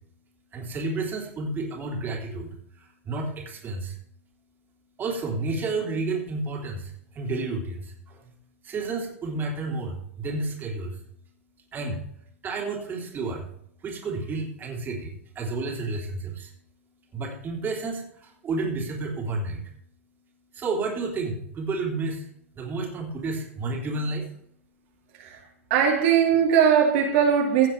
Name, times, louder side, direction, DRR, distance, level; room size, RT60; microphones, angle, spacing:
voice 1, 0.5-2.5 2.7-3.9 5.0-8.3 8.6-11.0 11.7-12.0 12.4-13.5 13.8-16.5 17.1-19.6 20.5-22.2 22.5-24.3, right 3 dB, 25° right, -1 dB, 3.3 m, -31 dB
voice 2, 25.7-27.7, right 7 dB, 55° right, -1 dB, 2.9 m, -20 dB
16.5 x 7.3 x 3.3 m, 0.68 s
hypercardioid pair, 105°, 7 cm